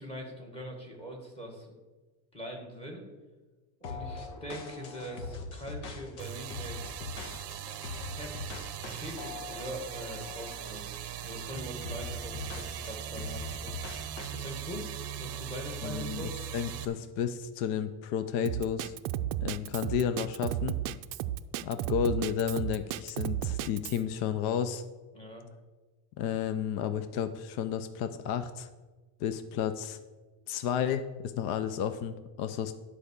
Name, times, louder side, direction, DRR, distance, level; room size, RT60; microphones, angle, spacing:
voice 1, 0.0-1.7 2.3-3.0 3.8-7.0 8.1-8.5 8.9-10.9 11.2-14.8 15.2-16.3 25.1-25.4, equal, 10° left, 0 dB, 1.9 m, -42 dB
sound 1, 3.8-10.8 11.2-11.4 11.8-14.4, left 4 dB, 75° left, 1.5 m, -42 dB
sound 2, 6.2-16.8, right 9 dB, 30° right, 0.8 m, -40 dB
voice 2, 15.8-18.9 19.4-20.8 21.6-24.8 26.2-28.7 29.2-30.0 30.5-32.7, left 8 dB, 55° left, 10 dB, 0.7 m, -32 dB
Drum kit, 18.5-24.0, right 13 dB, 55° right, 0.5 m, -33 dB
10.5 x 4.9 x 7.0 m, 1.3 s
cardioid pair, 165°, 47 cm